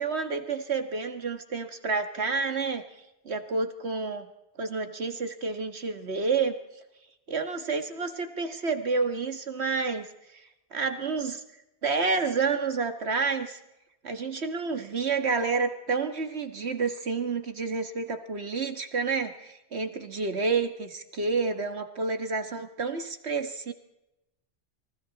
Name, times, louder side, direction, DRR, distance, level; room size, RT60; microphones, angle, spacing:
voice 1, 0.0-2.8 3.3-4.3 4.6-6.6 7.3-10.1 10.3-11.4 11.8-13.6 14.0-23.7, right 4 dB, 80° right, 7 dB, 1.9 m, -29 dB
29.0 x 26.5 x 4.2 m, 0.90 s
omnidirectional pair, 1.1 m